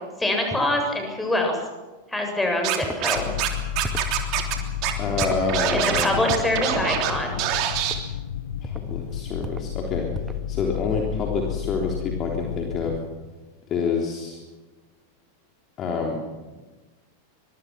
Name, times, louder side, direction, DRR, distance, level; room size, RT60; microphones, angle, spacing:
voice 1, 0.2-1.6 2.1-3.3 5.7-7.4, left 1 dB, 5° left, 2 dB, 7.2 m, -24 dB
Scratching (performance technique), 2.6-3.5 3.8-4.5 4.8-4.9 5.2-7.1 7.4-7.9, right 12 dB, 40° right, 3.3 m, -25 dB
sound 1, 2.8-3.0 3.8-4.1 5.2-5.5 6.3-6.5 7.7-8.0 8.6-8.9 9.4-9.7 10.1-10.5, right 3 dB, 10° right, 1.7 m, -35 dB
sound 2, 3.1-13.0, left 9 dB, 60° left, 1.8 m, -32 dB
voice 2, 5.0-6.2 8.6-10.1 10.5-13.0 13.7-14.4 15.8-16.2, left 4 dB, 30° left, 0 dB, 3.5 m, -27 dB
25.0 x 23.5 x 6.1 m, 1.2 s
figure-of-eight pair, 90°, 0 cm